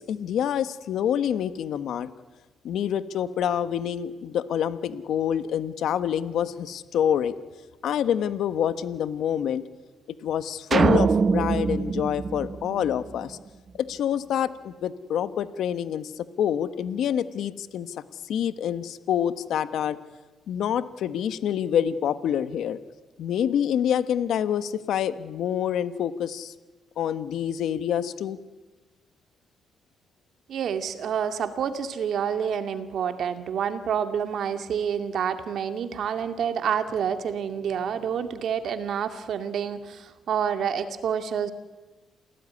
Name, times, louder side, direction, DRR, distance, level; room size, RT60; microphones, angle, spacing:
voice 1, 0.0-2.1 2.6-7.3 7.8-9.6 10.2-13.4 13.8-17.9 18.3-20.0 20.5-22.8 23.2-26.5 27.0-28.4, left 9 dB, 75° left, 13 dB, 1.3 m, -27 dB
sound 1, 10.7-13.2, right 5 dB, 40° right, 1.0 m, -23 dB
voice 2, 30.5-41.5, right 8 dB, 65° right, 8 dB, 2.4 m, -28 dB
28.5 x 18.0 x 9.8 m, 1.2 s
cardioid pair, 90°, 0 cm